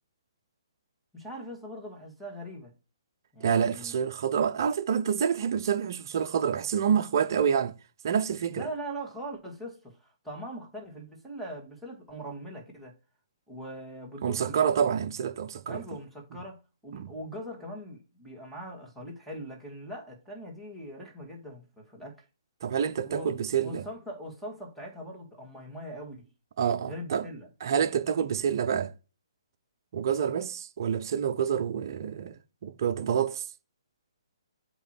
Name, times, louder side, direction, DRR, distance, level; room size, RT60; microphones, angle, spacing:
voice 1, 1.1-2.7 3.3-3.9 8.5-13.0 13.5-14.7 15.7-22.2 23.1-23.3 23.6-26.3 26.9-27.5, equal, ahead, 2.0 m, -41 dB
voice 2, 3.4-7.7 8.0-8.7 14.2-15.8 16.9-17.1 22.6-23.8 26.6-27.3 27.6-28.9 29.9-33.5, right 7 dB, 50° right, 0.6 m, -27 dB
8.0 x 3.0 x 4.6 m
figure-of-eight pair, 130°, 3 cm